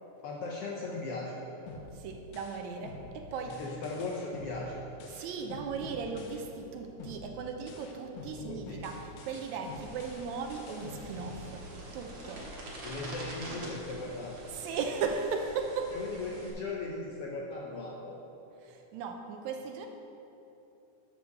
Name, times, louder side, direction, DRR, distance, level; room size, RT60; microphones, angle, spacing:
voice 1, 0.2-1.4 3.4-4.8 8.4-8.8 12.8-14.4 15.9-18.2, left 3 dB, 75° left, -2 dB, 1.4 m, -38 dB
sound 1, 1.7-6.7 7.0-12.0, left 2 dB, 90° left, 2.4 m, -47 dB
voice 2, 1.9-3.6 5.1-11.7 11.9-12.5 14.5-16.0 18.6-19.9, right 5 dB, 80° right, 4 dB, 1.9 m, -37 dB
Keyboard (musical), 3.3-8.7, right 2 dB, 40° left, 1.1 m, -58 dB
sound 2, 9.6-16.5, right 1 dB, 45° right, 2.0 m, -46 dB
11.5 x 4.7 x 6.5 m, 3.0 s
omnidirectional pair, 3.5 m